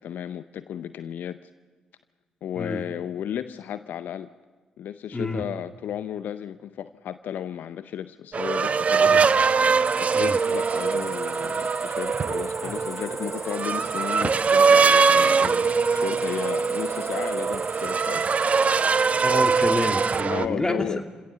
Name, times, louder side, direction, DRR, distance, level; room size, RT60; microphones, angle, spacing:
voice 1, 0.0-1.5 2.4-4.3 4.8-9.3 10.0-18.2 20.3-21.0, left 9 dB, 65° left, 13 dB, 0.6 m, -34 dB
voice 2, 5.1-5.4 9.1-9.2 10.1-10.4 19.2-20.9, left 2 dB, 20° left, 6 dB, 2.6 m, -28 dB
sound 1, 8.3-20.5, right 5 dB, 45° right, 0.9 m, -22 dB
Cricket, 9.8-20.2, equal, 5° left, 1.5 m, -42 dB
28.0 x 17.5 x 6.9 m, 1.4 s
hypercardioid pair, 40°, 3 cm